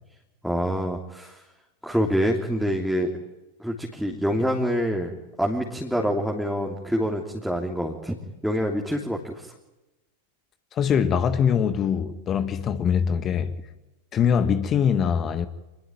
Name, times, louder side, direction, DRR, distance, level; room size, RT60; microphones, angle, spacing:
voice 1, 0.4-1.4 1.8-3.1 3.6-8.2 8.4-9.5, equal, ahead, 3.2 m, -26 dB
voice 2, 10.7-13.5 14.1-15.5, left 7 dB, 30° left, 1.6 m, -23 dB
27.5 x 21.0 x 9.1 m
figure-of-eight pair, 90°, 0 cm